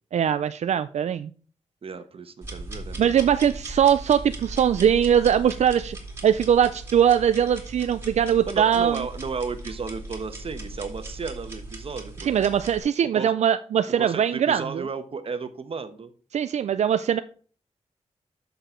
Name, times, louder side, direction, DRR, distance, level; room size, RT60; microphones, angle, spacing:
voice 1, 0.1-1.3 3.0-6.0 6.2-9.0 12.2-14.8 16.3-17.2, right 9 dB, 80° right, 11 dB, 0.4 m, -21 dB
voice 2, 1.8-3.3 8.5-12.3 13.1-13.3 14.0-16.1, right 5 dB, 55° right, 9 dB, 1.0 m, -33 dB
sound 1, 2.4-12.8, right 2 dB, 20° right, 2.6 m, -38 dB
8.0 x 6.7 x 4.4 m, 0.41 s
wide cardioid pair, 100°, 12 cm